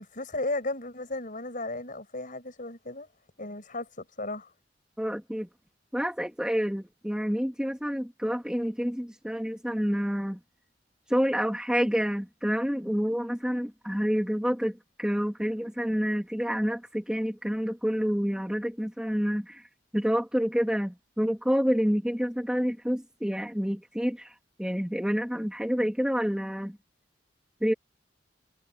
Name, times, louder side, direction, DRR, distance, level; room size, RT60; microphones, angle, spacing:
voice 1, 0.0-3.1 3.4-4.5, left 2 dB, 45° left, 6.4 m, -35 dB
voice 2, 5.0-5.5 5.9-10.4 11.1-19.7 19.9-26.8 27.6-27.7, equal, 5° right, 2.1 m, -28 dB
head